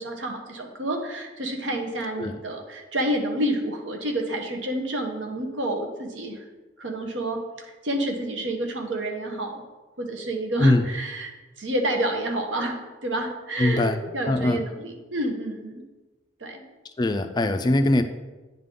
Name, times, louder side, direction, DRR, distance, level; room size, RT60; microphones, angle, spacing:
voice 1, 0.0-6.5 6.8-9.6 10.0-11.3 11.6-15.8 16.4-16.6, right 1 dB, 80° right, 3 dB, 0.9 m, -29 dB
voice 2, 13.6-14.0 14.3-14.6 17.0-18.0, left 2 dB, 20° left, 8 dB, 0.3 m, -21 dB
9.4 x 3.7 x 3.7 m, 1.2 s
head